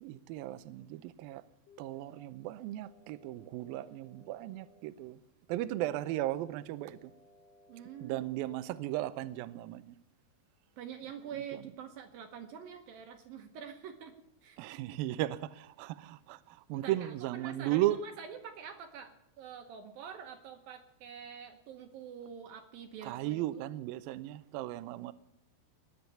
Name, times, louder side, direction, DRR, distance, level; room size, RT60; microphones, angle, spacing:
voice 1, 0.0-1.4 1.8-5.2 5.5-7.1 8.0-10.0 11.3-11.4 14.6-18.0 23.0-25.1, right 15 dB, 85° right, 2.1 m, -36 dB
sound 1, 1.7-2.3 2.8-4.8 5.8-6.4 6.9-8.9, left 1 dB, 30° left, 3.7 m, -61 dB
voice 2, 7.7-8.2 10.8-14.1 14.4-15.0 16.7-23.6, right 8 dB, 70° right, 2.5 m, -46 dB
20.5 x 8.1 x 7.0 m
omnidirectional pair, 4.9 m